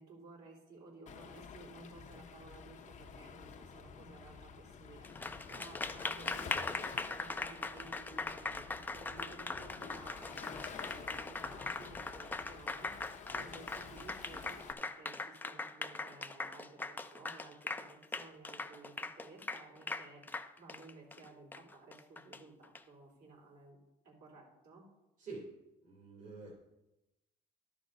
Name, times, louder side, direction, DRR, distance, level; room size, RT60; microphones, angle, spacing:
voice 1, 0.0-12.9 13.3-20.2 20.6-23.8 24.0-24.8, right 3 dB, 70° right, -1 dB, 3.7 m, -55 dB
Waves surf, 1.1-14.7, left 6 dB, 45° left, 0.7 m, -50 dB
Applause, 5.0-22.8, left 3 dB, 10° left, 0.5 m, -41 dB
voice 2, 25.2-25.5 25.8-26.5, right 3 dB, 55° right, -4 dB, 2.7 m, -47 dB
11.5 x 5.3 x 5.2 m, 0.95 s
cardioid pair, 110°, 17 cm